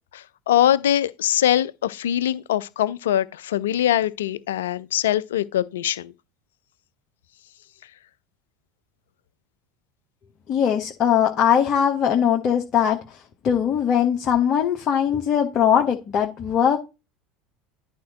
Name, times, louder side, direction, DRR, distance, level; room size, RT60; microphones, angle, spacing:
voice 1, 0.1-6.1, left 11 dB, 70° left, 0.4 m, -22 dB
voice 2, 10.5-16.8, left 8 dB, 40° left, 1.0 m, -21 dB
11.0 x 4.3 x 2.9 m
figure-of-eight pair, 70°, 0 cm